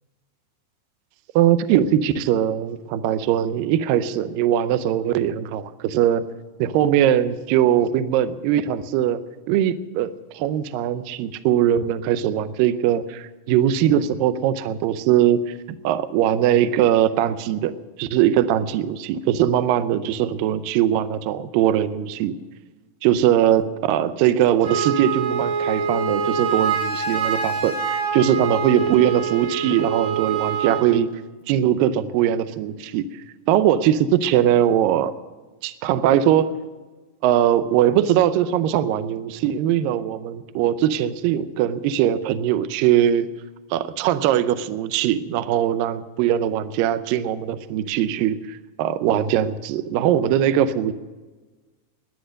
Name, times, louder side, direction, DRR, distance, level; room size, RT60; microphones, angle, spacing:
voice 1, 1.4-6.2 6.6-9.2 9.5-15.6 15.8-17.7 18.0-22.4 23.0-31.1 31.5-33.1 33.5-35.1 35.6-36.6 37.2-43.3 43.7-50.9, right 10 dB, 80° right, 12 dB, 2.0 m, -21 dB
Wind instrument woodwind instrument, 24.6-30.9, right 5 dB, 60° right, 3.7 m, -25 dB
20.0 x 10.5 x 6.4 m, 1.3 s
omnidirectional pair, 4.9 m